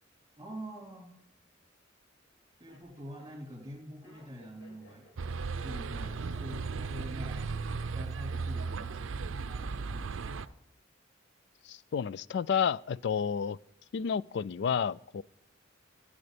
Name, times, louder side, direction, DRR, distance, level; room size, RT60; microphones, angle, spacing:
voice 1, 0.4-1.1 2.6-5.0 5.6-10.5, equal, 20° right, 3.5 m, -46 dB
Laughter, 1.6-1.7 2.3-8.9 9.2-9.7, left 2 dB, 85° left, 5.1 m, -58 dB
sound 1, 5.2-10.5, right 4 dB, 90° right, 0.5 m, -36 dB
voice 2, 11.7-13.6 13.9-15.2, left 7 dB, 60° left, 0.3 m, -31 dB
15.0 x 6.9 x 5.0 m
head